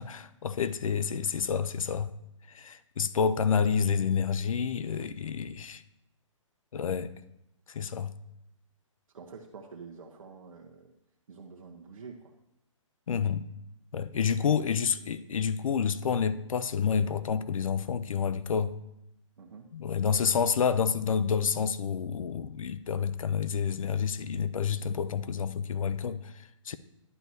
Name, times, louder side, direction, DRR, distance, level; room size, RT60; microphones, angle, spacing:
voice 1, 0.0-2.1 2.5-5.8 6.7-7.2 7.7-8.1 13.1-13.5 13.9-18.8 19.7-26.8, left 6 dB, 85° left, 0.5 m, -29 dB
voice 2, 9.1-10.9 11.3-12.3 14.0-14.9 19.4-19.7 20.1-20.5, right 5 dB, 85° right, 0.9 m, -48 dB
11.0 x 6.1 x 2.7 m
hypercardioid pair, 150°, 17 cm